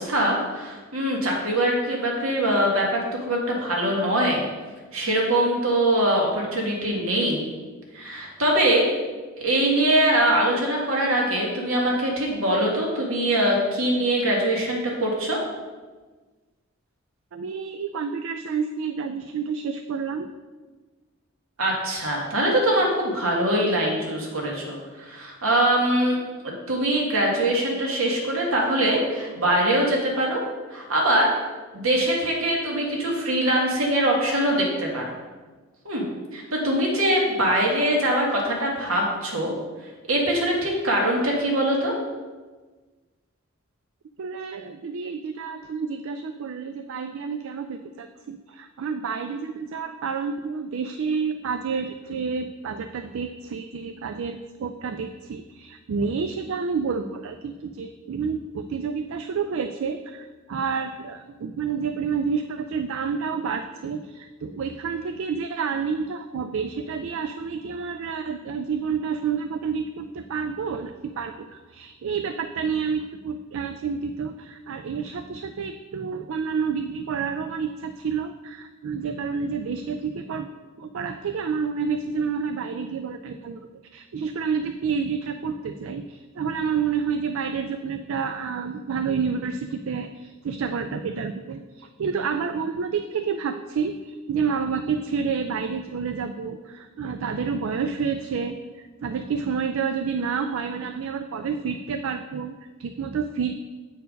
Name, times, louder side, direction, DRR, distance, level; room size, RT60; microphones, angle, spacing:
voice 1, 0.0-4.4 4.9-7.4 7.9-8.9 9.4-15.4 21.6-26.2 26.4-30.4 30.7-31.3 31.7-35.0 35.9-36.1 36.3-39.5 40.1-42.0, right 1 dB, 90° right, -2 dB, 1.9 m, -23 dB
voice 2, 17.3-20.3 44.2-80.5 80.8-103.5, right 5 dB, 70° right, 8 dB, 0.4 m, -29 dB
8.1 x 4.6 x 5.1 m, 1.3 s
head